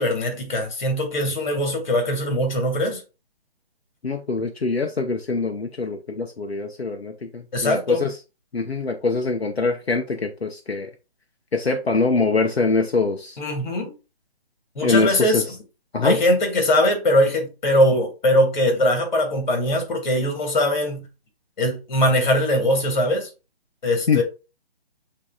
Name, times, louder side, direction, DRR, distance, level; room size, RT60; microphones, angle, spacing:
voice 1, 0.0-3.0 7.5-8.0 13.4-13.9 14.8-15.4 16.0-21.1 21.6-23.3 23.8-24.2, left 1 dB, 45° left, 1.8 m, -21 dB
voice 2, 4.0-8.2 8.5-10.9 11.5-13.4 14.8-15.4 15.9-16.2 24.1-24.2, left 3 dB, 85° left, 0.7 m, -23 dB
8.2 x 2.8 x 2.3 m
figure-of-eight pair, 140°, 31 cm